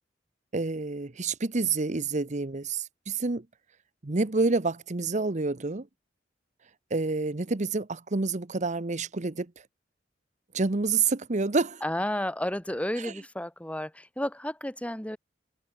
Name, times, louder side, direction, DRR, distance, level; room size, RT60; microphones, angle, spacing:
voice 1, 0.5-3.5 4.0-5.9 6.9-9.5 10.5-11.8 13.0-13.1, right 3 dB, 40° right, 0.9 m, -28 dB
voice 2, 11.8-15.2, left 1 dB, 5° left, 2.6 m, -32 dB
head